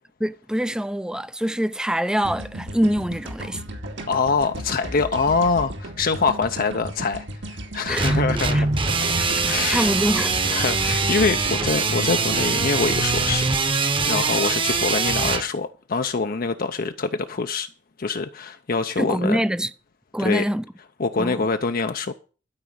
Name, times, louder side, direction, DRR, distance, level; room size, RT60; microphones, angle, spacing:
voice 1, 0.2-3.6 7.9-8.6 9.2-9.3 9.7-10.4 19.0-19.7 20.1-20.6 21.2-21.5, equal, 5° right, 0.5 m, -25 dB
sound 1, 2.2-14.5, right 1 dB, 70° right, 2.2 m, -35 dB
voice 2, 4.1-8.7 9.3-9.9 10.5-13.4 14.1-17.7 18.0-19.4 20.2-20.4 21.0-22.1, left 4 dB, 50° left, 0.6 m, -24 dB
sound 2, 8.0-15.4, right 4 dB, 30° right, 1.1 m, -23 dB
13.0 x 5.1 x 8.7 m
head